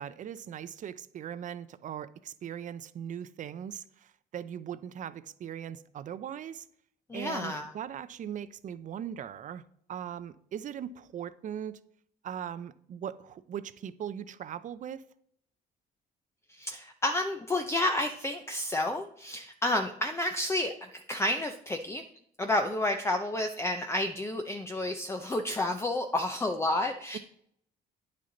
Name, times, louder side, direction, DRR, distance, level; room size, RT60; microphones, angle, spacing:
voice 1, 0.0-6.6 7.1-9.6 9.9-11.8 12.2-15.0, right 9 dB, 50° right, 0.6 m, -39 dB
voice 2, 7.1-7.7 16.5-22.0 22.4-27.2, left 1 dB, 15° left, 0.6 m, -30 dB
9.5 x 6.6 x 4.0 m
cardioid pair, 110°, 17 cm